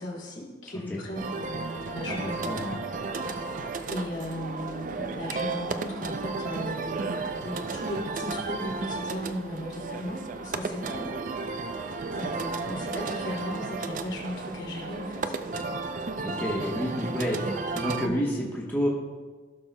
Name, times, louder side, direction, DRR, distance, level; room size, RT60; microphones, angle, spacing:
voice 1, 0.0-2.6 3.9-11.2 11.4-11.7 12.1-15.3 18.0-18.2, left 1 dB, 80° left, -4 dB, 2.6 m, -36 dB
sound 1, 1.2-18.1, right 3 dB, 45° right, 0.4 m, -33 dB
voice 2, 2.2-2.8 16.2-18.9, equal, 10° left, -4 dB, 1.0 m, -29 dB
16.5 x 6.2 x 2.2 m, 1.4 s
head